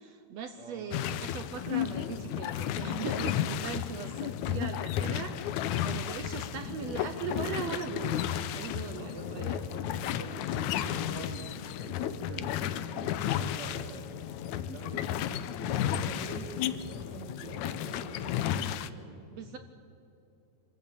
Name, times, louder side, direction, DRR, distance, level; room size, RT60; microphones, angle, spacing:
voice 1, 0.0-9.6 19.3-19.6, right 6 dB, 75° right, 8 dB, 1.6 m, -39 dB
voice 2, 0.6-0.9 8.9-14.2 14.5-19.3, right 3 dB, 55° right, -1 dB, 3.6 m, -45 dB
sound 1, 0.9-18.9, left 10 dB, 75° left, 1.8 m, -33 dB
25.0 x 14.5 x 8.8 m, 2.7 s
omnidirectional pair, 3.9 m